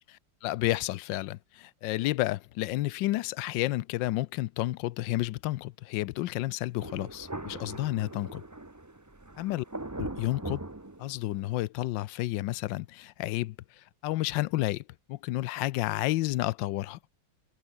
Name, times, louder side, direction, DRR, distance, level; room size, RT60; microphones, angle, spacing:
voice 1, 0.1-8.4 9.4-9.7 10.0-10.6 11.0-17.0, left 17 dB, 75° left, 1.2 m, -31 dB
Thunder, 6.8-11.6, right 2 dB, 10° right, 0.9 m, -41 dB
omnidirectional pair, 2.1 m